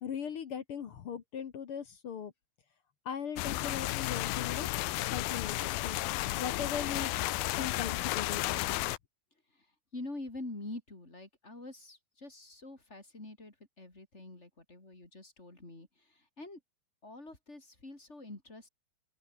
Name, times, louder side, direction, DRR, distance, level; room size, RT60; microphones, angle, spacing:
voice 1, 0.0-2.3 3.0-6.0 6.3-7.1 7.6-8.6, left 7 dB, 55° left, 1.5 m, -39 dB
sound 1, 3.4-9.0, left 18 dB, 85° left, 2.6 m, -33 dB
voice 2, 9.9-16.6 17.0-18.7, left 2 dB, 15° left, 5.0 m, -46 dB
open air
omnidirectional pair, 4.3 m